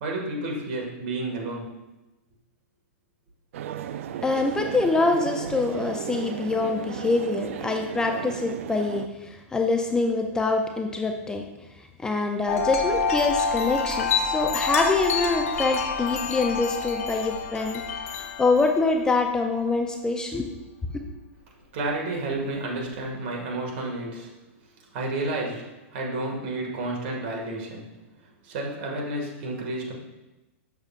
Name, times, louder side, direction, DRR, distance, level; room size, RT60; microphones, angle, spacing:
voice 1, 0.0-1.7 21.7-24.3 24.9-27.9 28.4-29.9, right 2 dB, 50° right, -1 dB, 1.8 m, -31 dB
sound 1, 3.5-9.1, right 10 dB, 70° right, 0.4 m, -35 dB
voice 2, 4.2-11.4 12.0-17.8 18.1-20.6, left 3 dB, 10° left, 4 dB, 0.4 m, -25 dB
Wind chime, 12.5-19.0, left 5 dB, 80° left, 0.9 m, -27 dB
6.9 x 6.7 x 2.4 m, 1.0 s
hypercardioid pair, 140°, 7 cm